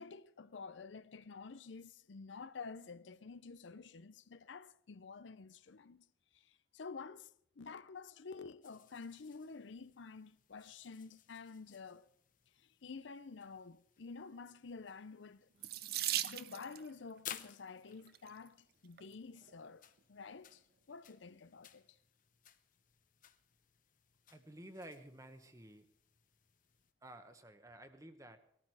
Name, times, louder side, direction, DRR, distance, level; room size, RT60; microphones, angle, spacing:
voice 1, 0.0-6.1 6.3-12.1 12.5-15.5 16.3-22.0, left 4 dB, 75° left, 0.6 m, -50 dB
sound 1, 8.6-26.9, left 10 dB, 45° left, 0.8 m, -58 dB
Water tap faucet / Sink (filling or washing), 15.6-16.9 17.9-18.3 19.0-19.1 19.4-19.5, right 13 dB, 50° right, 0.6 m, -38 dB
voice 2, 24.3-25.8 27.0-28.4, right 1 dB, 15° right, 1.2 m, -53 dB
19.5 x 13.5 x 4.8 m
head